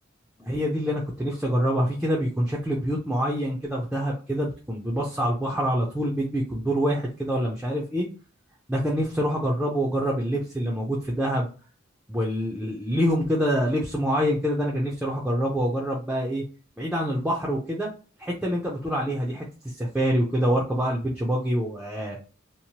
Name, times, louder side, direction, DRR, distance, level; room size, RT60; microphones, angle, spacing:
voice 1, 0.4-8.1 8.7-11.5 12.1-16.4 16.8-17.9 18.2-19.4 19.8-22.2, equal, 5° right, -3 dB, 0.4 m, -26 dB
2.9 x 2.0 x 2.8 m, 0.37 s
head